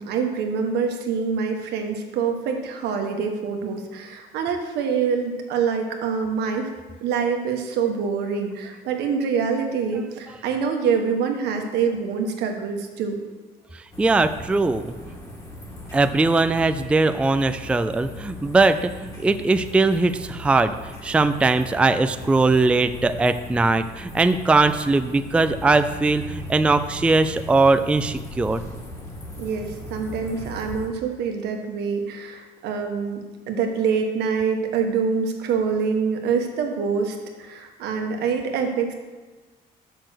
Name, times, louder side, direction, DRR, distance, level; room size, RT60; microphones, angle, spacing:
voice 1, 0.0-6.7 7.0-13.2 29.4-38.9, right 6 dB, 80° right, 4 dB, 1.3 m, -25 dB
sound 1, 13.9-30.9, left 1 dB, 20° left, 1.9 m, -38 dB
voice 2, 14.0-14.9 15.9-20.7 21.0-28.6, right 3 dB, 5° right, 10 dB, 0.3 m, -20 dB
6.6 x 6.0 x 6.5 m, 1.3 s
cardioid pair, 110°, 17 cm